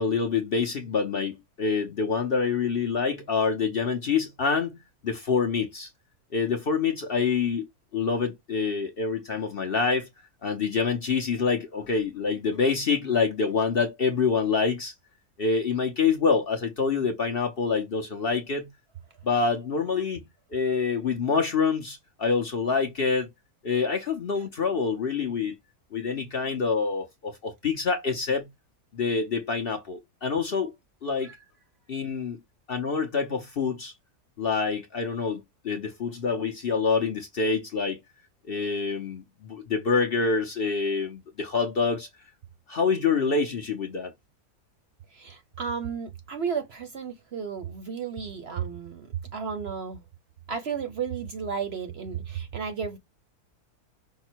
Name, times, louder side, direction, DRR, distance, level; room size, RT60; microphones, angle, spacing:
voice 1, 0.0-5.9 6.3-7.7 7.9-10.1 10.4-14.9 15.4-18.7 19.2-20.2 20.5-23.3 23.6-25.5 25.9-28.5 28.9-30.7 31.0-31.3 31.9-32.4 32.7-33.9 34.4-38.0 38.5-42.1 42.7-44.1, left 5 dB, 50° left, 0.8 m, -26 dB
voice 2, 45.1-50.0 50.5-53.0, right 6 dB, 55° right, 0.8 m, -33 dB
5.7 x 2.1 x 4.4 m
omnidirectional pair, 1.6 m